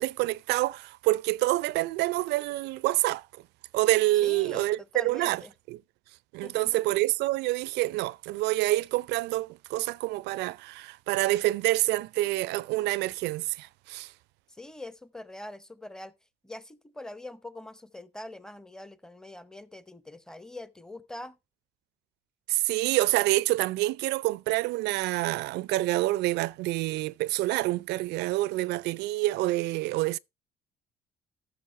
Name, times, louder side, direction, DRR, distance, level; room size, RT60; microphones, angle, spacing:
voice 1, 0.0-3.3 3.7-5.4 5.7-5.8 6.3-14.1 22.5-30.2, right 18 dB, 85° right, 0.4 m, -27 dB
voice 2, 4.2-5.5 6.4-6.8 14.5-16.1 16.4-21.4, left 1 dB, 5° left, 0.8 m, -44 dB
13.5 x 6.3 x 4.1 m
cardioid pair, 110°, 17 cm